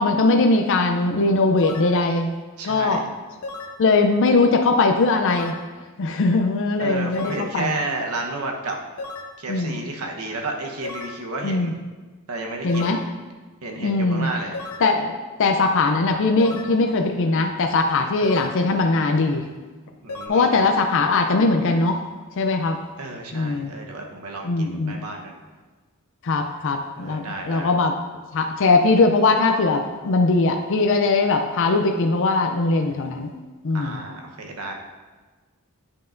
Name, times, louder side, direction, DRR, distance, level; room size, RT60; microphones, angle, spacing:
voice 1, 0.0-2.3 2.6-3.0 3.8-5.5 6.0-7.7 9.5-9.9 11.4-11.7 12.6-13.0 13.8-14.3 14.8-19.5 20.3-22.0 22.4-22.8 23.3-23.7 24.4-25.0 26.2-27.9 28.3-33.3 33.6-34.0, left 3 dB, 60° left, 4 dB, 0.5 m, -20 dB
sound 1, 1.6-2.0 3.4-3.8 5.3-5.7 7.1-7.5 9.0-9.4 10.8-11.2 12.7-13.1 14.5-14.9 16.4-16.8 18.2-18.6 20.1-20.3, left 3 dB, 85° left, 0.9 m, -34 dB
voice 2, 2.6-3.0 6.8-8.8 9.4-11.8 12.3-13.0 13.6-14.5 20.0-20.5 23.0-25.3 27.0-27.7 33.7-34.7, right 2 dB, 80° right, 1 dB, 1.0 m, -31 dB
9.8 x 5.6 x 2.6 m, 1.3 s
head